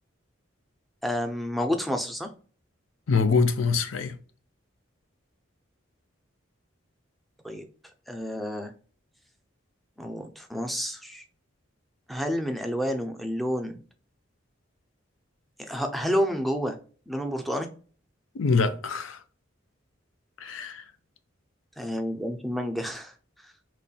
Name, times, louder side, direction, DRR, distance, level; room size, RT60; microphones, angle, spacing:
voice 1, 1.0-2.3 7.4-7.6 8.1-8.7 10.0-11.2 12.1-13.8 15.6-16.8 17.1-17.7 21.8-23.1 23.4-23.5, equal, ahead, 0.4 m, -29 dB
voice 2, 3.1-4.2 18.3-19.2 20.4-20.8, left 4 dB, 90° left, 0.5 m, -24 dB
4.1 x 3.1 x 2.3 m
head